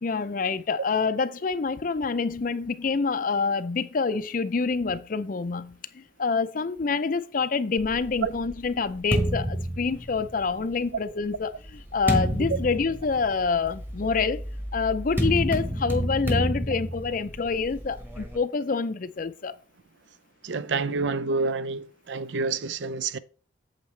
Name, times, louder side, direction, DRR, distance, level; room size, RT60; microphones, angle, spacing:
voice 1, 0.0-14.4 14.7-19.5, left 4 dB, 45° left, 0.5 m, -27 dB
sound 1, 7.8-10.6 11.3-18.4, equal, 10° right, 1.1 m, -30 dB
voice 2, 20.4-23.2, right 4 dB, 65° right, 0.5 m, -28 dB
8.7 x 7.4 x 3.2 m
head